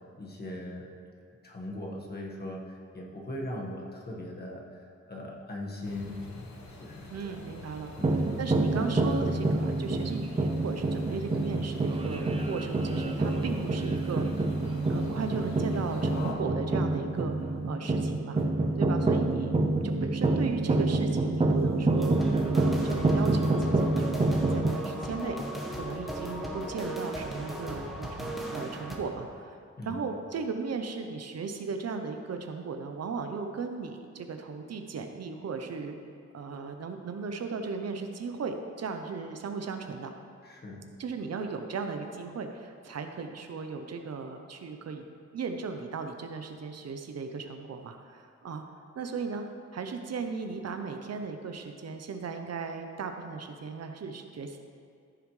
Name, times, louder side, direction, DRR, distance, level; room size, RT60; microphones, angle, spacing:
voice 1, 0.1-0.8 1.4-4.6 5.1-6.2 6.7-7.4 8.0-8.3 29.8-30.0 40.4-40.8, left 1 dB, 35° left, -2 dB, 1.6 m, -39 dB
sound 1, 5.8-16.4, left 3 dB, 70° left, 1.2 m, -45 dB
voice 2, 7.1-14.3 14.6-18.4 18.8-19.5 19.8-22.1 22.5-25.4 25.7-36.0 36.3-40.1 41.0-45.0 45.3-48.6 48.9-49.4 49.7-54.6, right 5 dB, 60° right, 6 dB, 0.8 m, -36 dB
sound 2, 8.0-24.7, right 2 dB, 20° right, 0.6 m, -27 dB
sound 3, 22.0-29.0, right 1 dB, ahead, 1.3 m, -36 dB
14.5 x 7.0 x 3.2 m, 2.2 s
wide cardioid pair, 110°, 29 cm